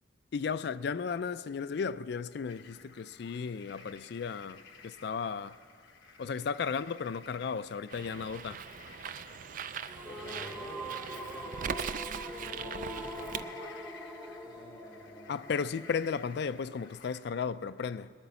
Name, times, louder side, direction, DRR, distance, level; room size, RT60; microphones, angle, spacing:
voice 1, 0.3-5.6 6.2-8.6 15.3-18.1, left 6 dB, 60° left, 0.3 m, -35 dB
sound 1, 2.5-17.2, left 5 dB, 75° left, 1.0 m, -54 dB
Bird, 7.9-13.4, right 7 dB, 45° right, 0.3 m, -40 dB
sound 2, 9.9-16.9, equal, 5° right, 1.0 m, -43 dB
voice 2, 10.0-11.8 12.2-13.6 14.4-15.4, left 1 dB, 35° left, 2.1 m, -51 dB
19.5 x 8.9 x 6.9 m
head